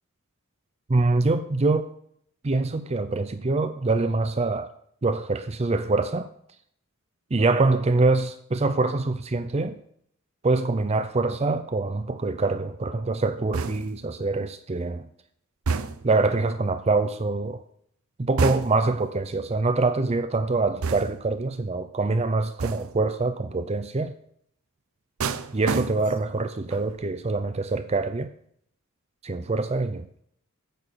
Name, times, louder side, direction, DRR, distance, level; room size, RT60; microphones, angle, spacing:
voice 1, 0.9-1.9 2.4-4.7 5.0-6.3 7.3-9.8 10.4-15.1 16.0-17.6 18.2-24.1 25.5-28.3 29.2-30.2, right 3 dB, 30° right, 0.5 m, -24 dB
sound 1, 13.5-14.1 15.7-16.2 18.4-19.0 20.8-21.4 22.6-23.1 25.2-26.3 26.7-27.1, right 4 dB, 70° right, 0.6 m, -29 dB
9.2 x 6.4 x 7.6 m
head